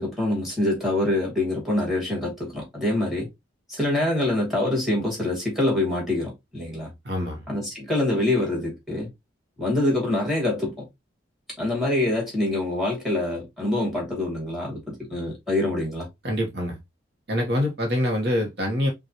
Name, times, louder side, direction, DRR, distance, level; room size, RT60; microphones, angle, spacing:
voice 1, 0.0-3.3 3.7-6.9 7.5-9.1 9.6-10.8 11.6-16.1, left 1 dB, ahead, 2.4 m, -25 dB
voice 2, 7.0-7.4 16.2-16.8 17.3-18.9, left 1 dB, 55° right, 1.2 m, -25 dB
5.4 x 2.6 x 2.9 m
head